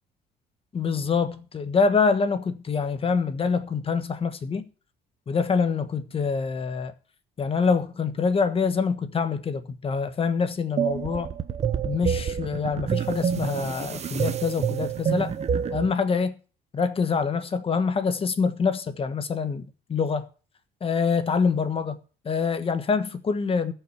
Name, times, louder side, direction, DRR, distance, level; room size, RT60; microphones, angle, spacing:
voice 1, 0.7-4.6 5.3-6.9 7.4-11.3 11.8-15.3 15.7-16.3 16.7-20.3 20.8-22.0 22.2-23.7, left 5 dB, 35° left, 1.3 m, -25 dB
sound 1, 10.8-15.9, right 7 dB, 40° right, 1.0 m, -27 dB
13.5 x 5.9 x 8.1 m
cardioid pair, 110°, 17 cm